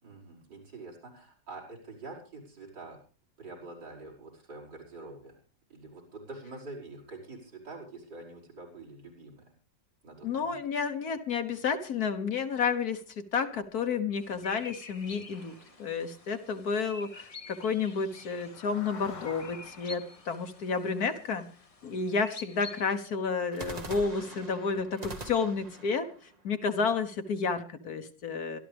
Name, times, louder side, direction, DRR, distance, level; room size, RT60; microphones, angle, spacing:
voice 1, 0.0-3.0 3.4-5.4 5.7-9.5 10.0-10.6, right 3 dB, 75° right, 1 dB, 5.9 m, -46 dB
voice 2, 10.2-21.5 21.8-26.1 26.4-28.6, left 5 dB, 60° left, 8 dB, 1.5 m, -31 dB
sound 1, 11.6-11.7 12.1-12.2 12.4-12.6 13.0-13.3 13.7-13.8 14.1-14.2 14.4-14.6 14.9-25.3, left 3 dB, 80° left, 3.4 m, -53 dB
sound 2, 14.2-23.0, left 3 dB, 25° left, 1.0 m, -49 dB
sound 3, 15.3-16.8 23.5-27.5, right 2 dB, 25° right, 1.4 m, -45 dB
24.5 x 12.5 x 3.5 m, 0.37 s
omnidirectional pair, 1.9 m